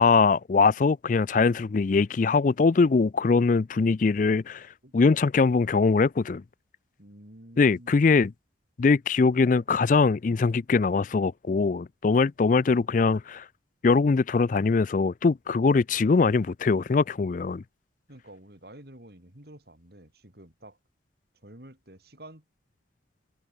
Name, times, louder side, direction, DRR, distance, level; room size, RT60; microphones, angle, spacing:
voice 1, 0.0-4.7 4.9-6.4 7.6-8.3 8.8-13.5 13.8-17.6, left 4 dB, 45° left, 0.4 m, -22 dB
voice 2, 7.0-7.9 18.1-20.8 21.4-22.4, right 1 dB, 55° right, 3.9 m, -49 dB
head